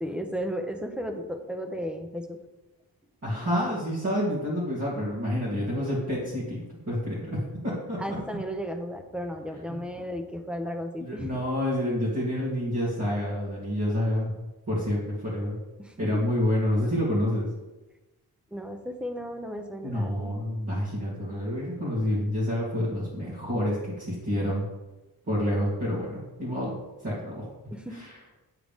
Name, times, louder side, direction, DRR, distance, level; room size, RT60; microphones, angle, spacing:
voice 1, 0.0-2.4 8.0-11.3 15.8-16.2 18.5-20.3 27.7-28.0, equal, 5° right, 4 dB, 0.6 m, -34 dB
voice 2, 3.2-8.2 11.0-14.3 14.7-15.6 16.0-17.5 19.8-24.6 25.3-26.8 27.0-27.5 27.9-28.1, left 1 dB, 40° right, -11 dB, 2.3 m, -28 dB
9.7 x 3.8 x 3.5 m, 1.1 s
wide cardioid pair, 140°, 38 cm